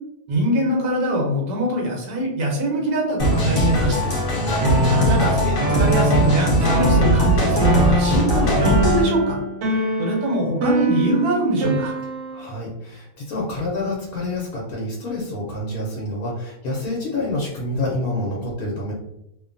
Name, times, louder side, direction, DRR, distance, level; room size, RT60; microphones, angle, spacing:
voice 1, 0.3-4.1 4.9-9.4 10.0-11.9, right 1 dB, 90° right, 0 dB, 1.3 m, -23 dB
sound 1, 3.2-9.0, right 1 dB, 50° left, 0.8 m, -20 dB
sound 2, 4.6-12.5, equal, 60° right, 0.8 m, -23 dB
voice 2, 12.3-18.9, left 2 dB, 75° left, -4 dB, 1.2 m, -27 dB
3.0 x 2.1 x 2.5 m, 0.84 s
omnidirectional pair, 1.6 m